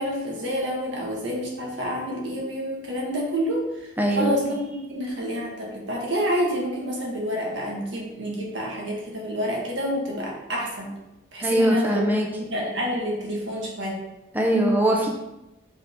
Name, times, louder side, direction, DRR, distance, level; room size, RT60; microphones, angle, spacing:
voice 1, 0.0-3.9 4.2-10.9 11.3-12.1 12.5-14.0, equal, 75° right, -2 dB, 1.9 m, -28 dB
voice 2, 4.0-4.4 11.4-12.3 14.3-15.1, right 1 dB, 10° right, 0 dB, 0.9 m, -21 dB
6.6 x 5.0 x 3.9 m, 0.97 s
head